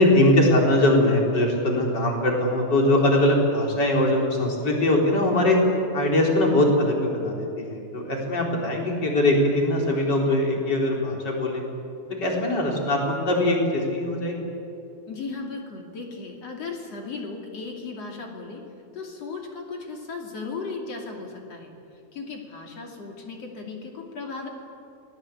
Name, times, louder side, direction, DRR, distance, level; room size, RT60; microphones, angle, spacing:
voice 1, 0.0-5.6 5.9-11.6 12.2-14.5, left 1 dB, 25° left, 0 dB, 3.9 m, -21 dB
voice 2, 15.1-18.6 18.9-21.7 22.1-24.5, left 4 dB, 40° left, 1 dB, 2.8 m, -36 dB
29.0 x 20.5 x 8.4 m, 2.6 s
omnidirectional pair, 5.8 m